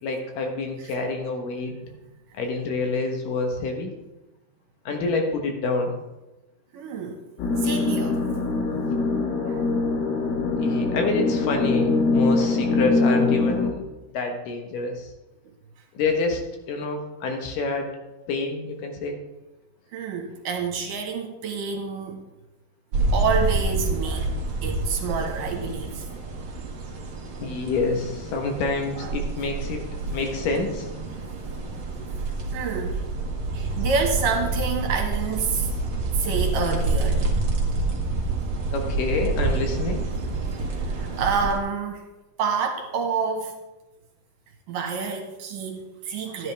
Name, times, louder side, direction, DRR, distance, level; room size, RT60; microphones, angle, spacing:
voice 1, 0.0-1.7 2.3-3.9 4.9-6.0 10.6-13.8 14.1-15.1 15.9-16.4 16.7-17.9 18.3-19.2 27.4-29.8 30.1-30.9 32.0-32.1 38.7-40.1, left 3 dB, 70° left, 3 dB, 2.8 m, -27 dB
voice 2, 1.7-2.0 6.7-7.2 7.6-8.2 9.4-9.6 10.7-10.8 19.9-22.2 23.1-24.4 24.6-26.1 29.0-29.1 32.5-33.0 33.5-35.7 36.2-37.3 41.0-42.0 42.4-43.5 44.7-46.5, right 5 dB, 70° right, 2 dB, 3.0 m, -28 dB
sound 1, 7.4-13.7, left 3 dB, 90° left, 3.5 m, -23 dB
sound 2, 22.9-41.6, right 3 dB, 45° right, 2.0 m, -28 dB
13.0 x 10.0 x 3.4 m, 1.0 s
omnidirectional pair, 4.1 m